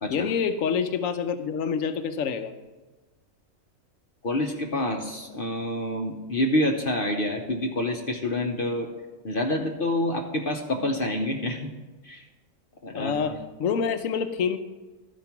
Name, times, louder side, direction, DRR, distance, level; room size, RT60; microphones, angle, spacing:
voice 1, 0.1-2.5 13.0-13.3 13.6-14.6, left 6 dB, 75° left, 9 dB, 1.1 m, -26 dB
voice 2, 4.2-8.9 9.2-11.7 12.0-12.2 12.8-13.4, left 1 dB, 45° left, 2 dB, 0.9 m, -27 dB
12.5 x 5.2 x 5.8 m, 1.2 s
omnidirectional pair, 1.4 m